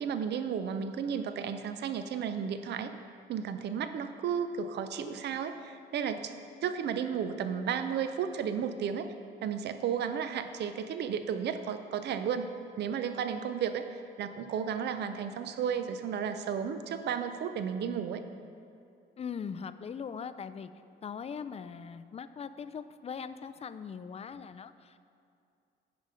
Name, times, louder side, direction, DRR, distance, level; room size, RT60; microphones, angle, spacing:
voice 1, 0.0-2.9 3.3-6.3 6.6-9.1 9.4-12.5 12.8-18.2, right 7 dB, 60° right, 9 dB, 0.5 m, -33 dB
voice 2, 19.2-20.7 21.0-25.0, left 6 dB, 30° left, 12 dB, 0.4 m, -40 dB
9.5 x 5.1 x 5.6 m, 2.5 s
cardioid pair, 90°, 20 cm